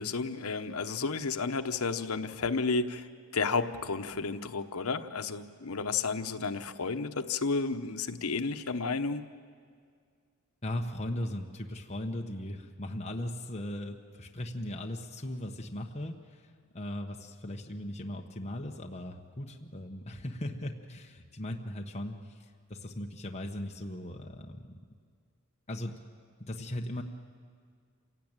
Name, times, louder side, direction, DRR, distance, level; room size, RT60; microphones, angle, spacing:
voice 1, 0.0-3.1 3.3-9.2, left 4 dB, 80° left, 9 dB, 1.0 m, -32 dB
voice 2, 10.6-24.8 25.7-25.9 26.4-27.0, left 1 dB, 30° left, 1 dB, 1.2 m, -38 dB
27.5 x 17.0 x 9.0 m, 2.1 s
head